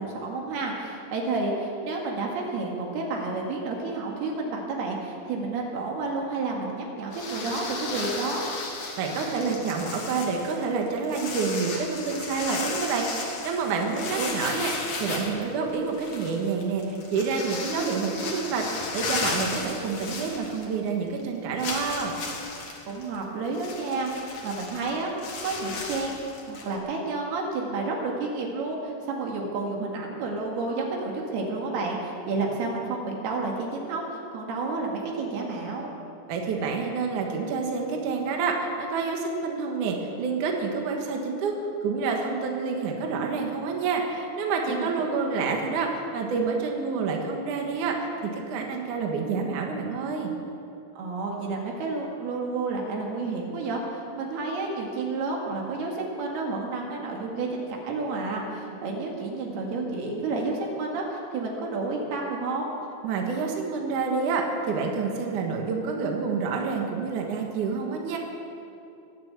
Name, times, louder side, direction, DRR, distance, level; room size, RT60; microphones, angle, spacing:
voice 1, 0.0-8.5 13.9-14.3 22.9-35.9 44.7-44.9 51.0-62.7, right 3 dB, 80° right, -1 dB, 3.9 m, -30 dB
sound 1, 7.1-20.9 21.2-21.3 21.6-26.8, left 3 dB, 50° left, 2.5 m, -35 dB
voice 2, 9.0-22.1 36.3-50.3 63.0-68.2, right 4 dB, 60° right, 1 dB, 2.7 m, -28 dB
22.5 x 7.5 x 8.2 m, 2.7 s
omnidirectional pair, 4.5 m